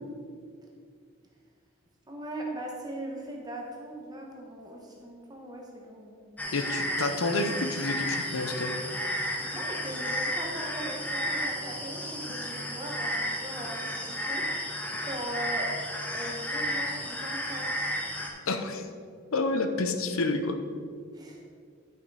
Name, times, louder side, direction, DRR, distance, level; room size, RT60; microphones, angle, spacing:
voice 1, 2.1-6.2 9.4-14.5 15.0-15.7 16.1-17.7 21.1-21.4, right 1 dB, 20° right, -1 dB, 1.2 m, -39 dB
sound 1, 6.4-18.3, equal, 10° left, 0.9 m, -33 dB
voice 2, 6.5-8.7 18.5-18.8 19.3-20.6, left 2 dB, 80° left, 7 dB, 0.8 m, -29 dB
11.0 x 6.0 x 4.8 m, 2.2 s
head